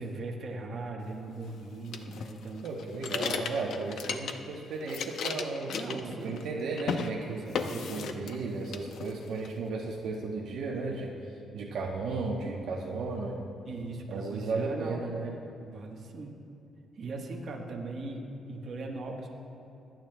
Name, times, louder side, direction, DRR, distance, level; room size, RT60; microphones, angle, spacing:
voice 1, 0.0-2.7 5.7-6.4 7.2-8.0 13.6-15.0 15.6-16.4 16.9-19.3, right 3 dB, 50° right, 0 dB, 1.2 m, -39 dB
sound 1, 1.9-4.5 4.8-6.5 6.8-7.1 7.5-8.4 8.7-9.5, left 6 dB, 65° left, 0.6 m, -35 dB
voice 2, 2.6-13.4 14.1-15.4, right 3 dB, 75° right, -1 dB, 1.0 m, -35 dB
24.0 x 9.0 x 2.3 m, 2.7 s
cardioid pair, 135°, 0 cm